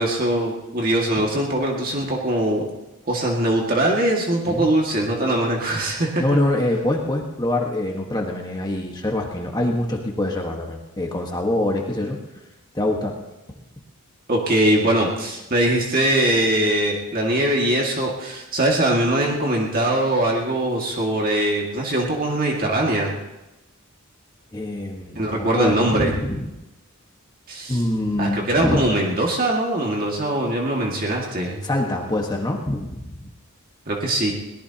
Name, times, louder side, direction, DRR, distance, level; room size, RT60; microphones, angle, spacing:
voice 1, 0.0-2.7 3.1-6.2 14.3-23.1 25.2-26.2 27.5-27.8 28.2-31.7 33.9-34.3, right 1 dB, 40° right, -1 dB, 2.0 m, -21 dB
voice 2, 6.2-12.2 12.7-13.2 24.5-26.4 27.7-28.8 31.6-33.2, left 1 dB, 20° left, 0 dB, 1.4 m, -24 dB
22.5 x 18.0 x 2.9 m, 0.99 s
head